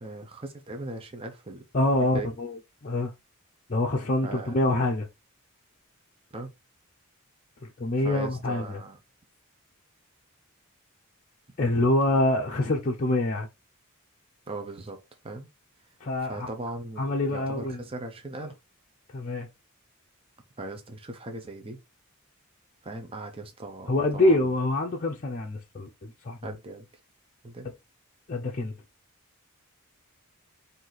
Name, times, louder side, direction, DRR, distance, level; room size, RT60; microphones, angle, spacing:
voice 1, 0.0-1.6 2.1-2.3 4.2-4.6 6.3-6.5 8.0-9.0 14.5-15.0 15.2-15.5 16.3-18.5 20.6-21.8 22.8-24.5 26.4-26.9 27.4-27.7, right 2 dB, 25° right, 0.6 m, -38 dB
voice 2, 1.7-3.1 3.7-5.1 7.8-8.8 11.6-13.5 16.0-16.5 17.0-17.8 19.1-19.5 23.9-26.5 28.3-28.7, left 1 dB, 40° left, 0.6 m, -26 dB
4.7 x 2.7 x 3.9 m
head